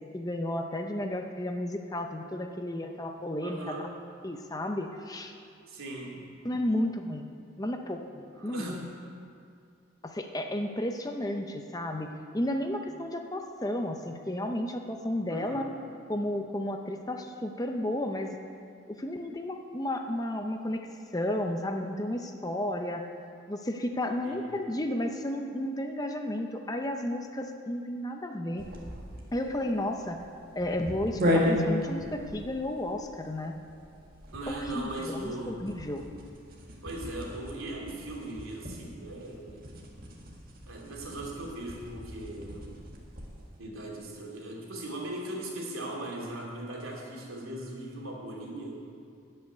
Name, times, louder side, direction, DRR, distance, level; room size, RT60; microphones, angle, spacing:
voice 1, 0.1-3.8 4.2-5.3 6.4-7.3 7.6-8.8 10.0-15.6 16.1-18.4 19.0-20.9 21.1-23.1 23.5-28.6 29.3-30.2 30.6-33.5 34.5-36.0, left 1 dB, 20° left, 4 dB, 0.6 m, -32 dB
voice 2, 3.4-4.0 5.7-6.2 8.3-8.8 15.3-15.7 24.2-24.6 34.3-35.6 36.8-39.7 40.7-42.7 43.6-48.8, right 1 dB, 85° right, -2 dB, 2.7 m, -39 dB
sound 1, 28.6-43.5, left 1 dB, 45° right, 1.7 m, -36 dB
13.5 x 5.7 x 9.3 m, 2.4 s
head